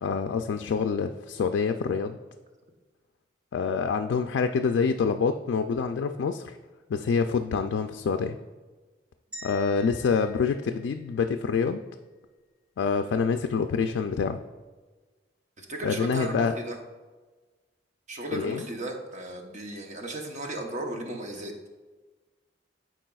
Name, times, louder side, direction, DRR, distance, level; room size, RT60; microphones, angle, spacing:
voice 1, 0.0-2.2 3.5-6.6 6.9-8.3 9.4-11.8 12.8-14.4 15.8-16.5 18.3-18.6, left 5 dB, 85° left, 6 dB, 0.3 m, -26 dB
sound 1, 9.3-11.6, left 3 dB, 10° right, 1.7 m, -46 dB
voice 2, 15.6-16.8 18.1-21.5, right 1 dB, 40° right, 2 dB, 0.9 m, -35 dB
11.5 x 4.7 x 2.3 m, 1.3 s
head